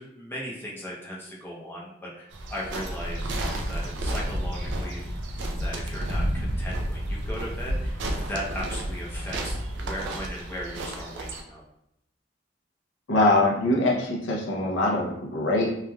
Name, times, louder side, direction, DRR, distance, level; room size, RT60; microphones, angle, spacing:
voice 1, 0.0-5.0 5.5-11.6, equal, 10° left, -5 dB, 0.6 m, -37 dB
sound 1, 2.3-11.4, right 1 dB, 70° right, 0.4 m, -31 dB
voice 2, 13.1-15.7, left 2 dB, 85° left, -2 dB, 0.6 m, -23 dB
3.1 x 2.4 x 2.2 m, 0.79 s
head